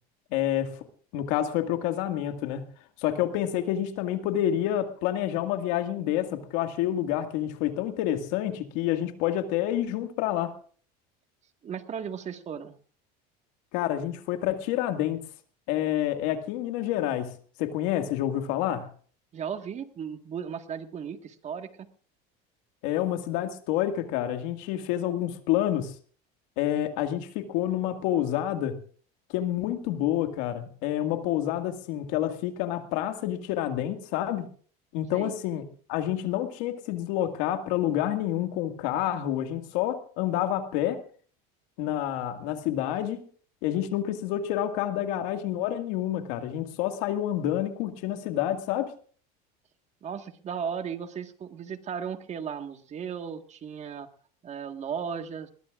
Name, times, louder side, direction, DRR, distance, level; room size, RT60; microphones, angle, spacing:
voice 1, 0.3-0.8 1.1-2.7 3.0-10.5 13.7-15.3 15.7-17.3 17.6-18.9 22.8-25.9 26.6-28.8 29.3-34.5 34.9-41.0 41.8-43.3 43.6-48.9, left 12 dB, 75° left, 2.1 m, -28 dB
voice 2, 11.6-12.7 19.3-21.9 35.1-35.3 50.0-54.1 54.4-55.5, right 7 dB, 35° right, 1.7 m, -36 dB
20.5 x 20.0 x 2.5 m
supercardioid pair, 120°, 20 cm